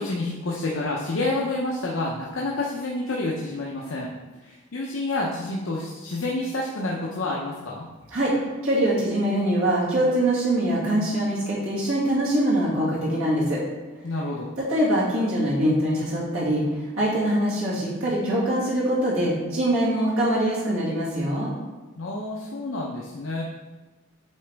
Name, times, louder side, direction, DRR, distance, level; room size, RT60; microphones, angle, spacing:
voice 1, 0.0-4.1 4.4-7.9 14.0-14.5 22.0-23.4, left 2 dB, 70° left, -4 dB, 0.7 m, -29 dB
voice 2, 8.6-13.6 14.7-16.6 16.9-21.5, right 1 dB, 85° right, -8 dB, 2.1 m, -23 dB
8.4 x 3.9 x 3.4 m, 1.2 s
head